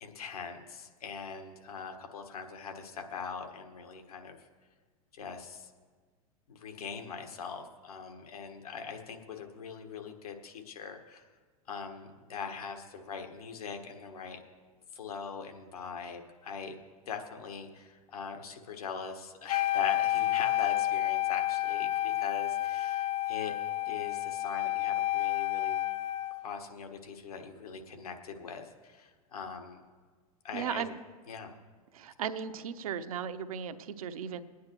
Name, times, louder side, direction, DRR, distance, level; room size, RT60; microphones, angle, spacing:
voice 1, 0.0-4.4 5.1-5.7 6.5-11.2 11.7-14.4 14.9-16.7 17.1-23.5 23.8-25.7 26.4-29.8 30.4-30.8 31.3-31.5, left 6 dB, 75° left, 5 dB, 1.5 m, -41 dB
Wind instrument woodwind instrument, 19.5-26.4, left 14 dB, 30° left, 0.5 m, -30 dB
voice 2, 30.5-30.9 31.9-34.4, right 8 dB, 70° right, 10 dB, 0.8 m, -36 dB
22.5 x 9.5 x 3.0 m, 1.5 s
hypercardioid pair, 90°, 19 cm